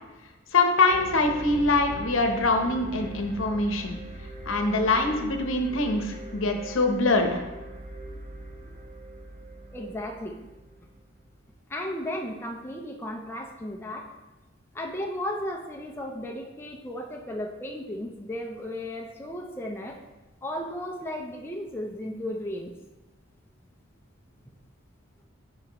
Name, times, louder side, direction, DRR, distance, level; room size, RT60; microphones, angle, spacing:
voice 1, 0.5-4.0 4.5-7.4, left 2 dB, 75° left, 4 dB, 0.8 m, -24 dB
sound 1, 0.9-11.2, right 2 dB, 35° right, 0.6 m, -41 dB
voice 2, 9.7-10.3 11.7-14.1 14.7-20.0 20.4-22.7, left 1 dB, 10° left, 0 dB, 0.5 m, -35 dB
9.7 x 4.3 x 3.0 m, 1.1 s
head